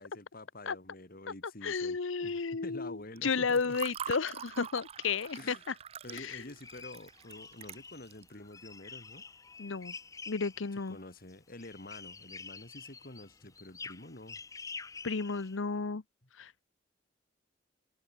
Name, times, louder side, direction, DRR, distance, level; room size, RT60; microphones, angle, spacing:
voice 1, 0.0-3.8 5.4-5.6 6.0-9.3 10.9-14.4, left 2 dB, 50° left, 2.7 m, -48 dB
voice 2, 1.6-5.7 6.1-6.4 9.6-9.9 10.3-11.0 15.0-16.0 16.4-16.6, left 5 dB, 85° left, 0.8 m, -33 dB
Water / Fill (with liquid), 3.2-8.3, right 8 dB, 30° right, 0.4 m, -44 dB
sound 1, 6.1-15.6, left 4 dB, 15° left, 0.6 m, -48 dB
head